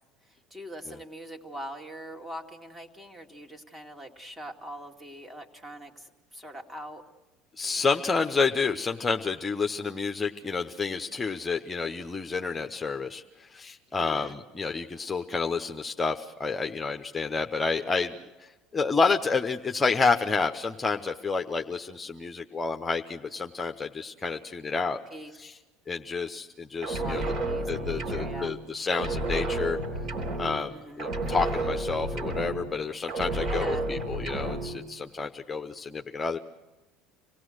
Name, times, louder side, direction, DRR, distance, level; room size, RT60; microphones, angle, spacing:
voice 1, 0.3-7.0 14.0-14.4 25.1-25.3 26.9-28.5 30.7-31.2 33.4-33.9, equal, 15° right, 3 dB, 2.3 m, -42 dB
voice 2, 7.6-25.0 25.4-25.5 25.9-27.2 27.7-29.8 30.4-36.4, left 4 dB, 20° left, 5 dB, 0.9 m, -29 dB
sound 1, 26.8-28.7 28.9-30.7 31.0-32.8 33.1-34.8, right 2 dB, 50° right, 3.8 m, -31 dB
26.5 x 17.5 x 6.4 m, 1.1 s
hypercardioid pair, 85°, 0 cm